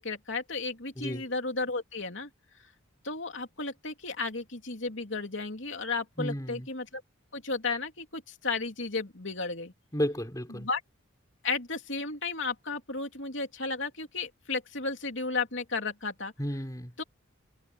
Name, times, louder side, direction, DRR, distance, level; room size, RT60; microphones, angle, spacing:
voice 1, 0.0-2.3 3.0-7.0 7.3-9.7 10.5-10.8 11.4-16.3 17.0-17.1, left 3 dB, 60° left, 3.3 m, -33 dB
voice 2, 6.2-6.7 9.9-10.7 16.4-16.9, equal, 15° left, 4.9 m, -32 dB
head